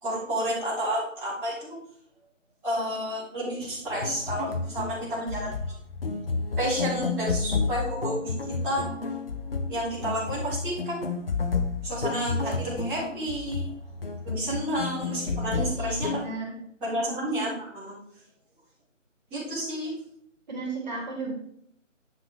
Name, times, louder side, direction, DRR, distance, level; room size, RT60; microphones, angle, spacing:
voice 1, 0.0-1.8 2.6-5.5 6.6-8.9 9.7-11.1 11.8-13.7 14.2-15.5 15.8-16.1 16.8-17.9 19.3-19.9, equal, 5° right, -15 dB, 1.7 m, -30 dB
sound 1, 3.9-16.3, left 4 dB, 50° left, 1.1 m, -31 dB
voice 2, 15.5-16.6 20.5-21.3, right 3 dB, 35° right, -1 dB, 3.0 m, -34 dB
10.0 x 5.0 x 4.9 m, 0.67 s
figure-of-eight pair, 165°, 38 cm